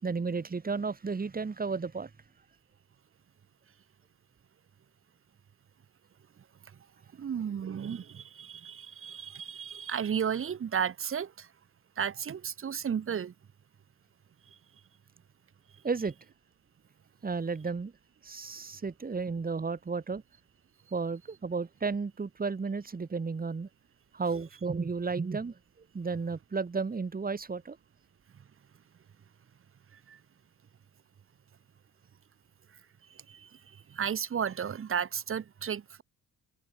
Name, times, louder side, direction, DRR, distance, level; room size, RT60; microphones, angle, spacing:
voice 1, 0.0-2.1 15.8-16.1 17.2-17.9 18.2-20.2 20.9-23.7 24.1-25.5 25.9-27.8, right 4 dB, 30° right, 4.7 m, -33 dB
voice 2, 7.2-11.5 12.0-13.3 30.1-30.2 33.3-33.5 33.9-36.0, right 8 dB, 45° right, 1.7 m, -33 dB
cardioid pair, 90°, 30 cm